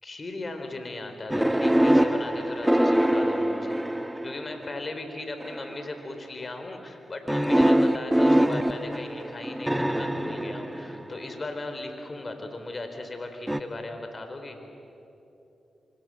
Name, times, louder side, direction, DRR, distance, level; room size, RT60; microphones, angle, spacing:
voice 1, 0.0-3.8 4.2-14.6, left 2 dB, 40° left, 6 dB, 4.5 m, -37 dB
sound 1, 1.3-4.7 5.4-5.9 7.3-11.4 13.5-13.6, right 1 dB, 5° right, 1.5 m, -24 dB
26.0 x 26.0 x 7.9 m, 2.9 s
supercardioid pair, 50°, 0 cm